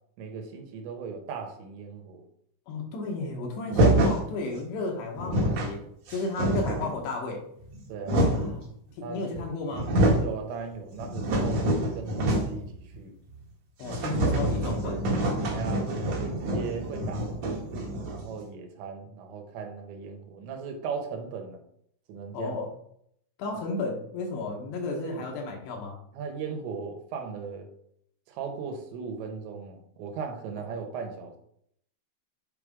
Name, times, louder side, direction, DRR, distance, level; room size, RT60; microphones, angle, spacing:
voice 1, 0.2-2.2 6.4-6.6 7.9-8.3 9.0-9.5 10.2-13.2 15.5-21.6 22.1-22.6 25.0-25.2 26.1-27.7 28.3-31.4, right 5 dB, 80° right, 4 dB, 3.2 m, -38 dB
voice 2, 2.7-5.8 6.1-7.4 8.3-8.7 9.0-9.9 13.8-15.0 22.3-22.7 23.4-26.0, left 3 dB, 75° left, 1 dB, 3.2 m, -33 dB
sound 1, 3.7-4.2 4.9-5.0 5.1-5.7 6.1-6.9 7.6-8.6 9.3-9.4 9.7-10.3 10.7-12.7 12.9-13.0 13.3-13.4 13.8-18.3, right 1 dB, 55° right, 2.1 m, -26 dB
8.0 x 4.9 x 3.6 m, 0.70 s
omnidirectional pair, 5.2 m